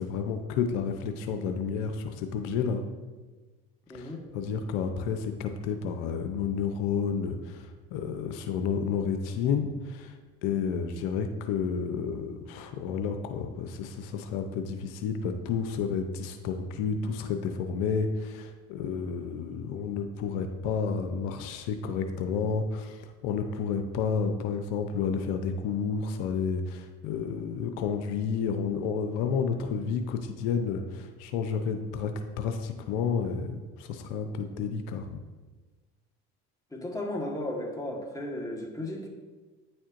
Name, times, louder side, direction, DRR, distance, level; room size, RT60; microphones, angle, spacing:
voice 1, 0.0-2.8 3.9-10.2 10.4-35.2, left 6 dB, 85° left, 6 dB, 0.6 m, -31 dB
voice 2, 3.9-4.2 36.7-39.1, left 1 dB, 10° left, 0 dB, 1.3 m, -35 dB
9.4 x 4.3 x 2.5 m, 1.3 s
supercardioid pair, 75°, 30 cm